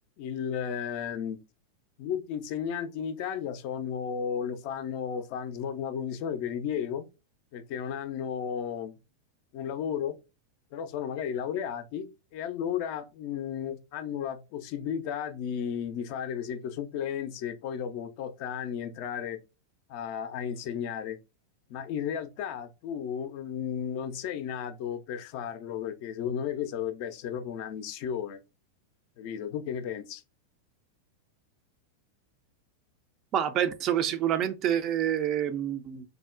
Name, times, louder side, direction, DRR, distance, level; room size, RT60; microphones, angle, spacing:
voice 1, 0.2-1.4 2.0-7.1 7.5-8.9 9.5-10.2 10.7-19.4 19.9-21.2 21.7-28.4 29.2-30.2, left 8 dB, 45° left, 0.4 m, -34 dB
voice 2, 33.3-36.0, right 10 dB, 35° right, 0.3 m, -27 dB
3.6 x 2.0 x 2.3 m
figure-of-eight pair, 90°, 0 cm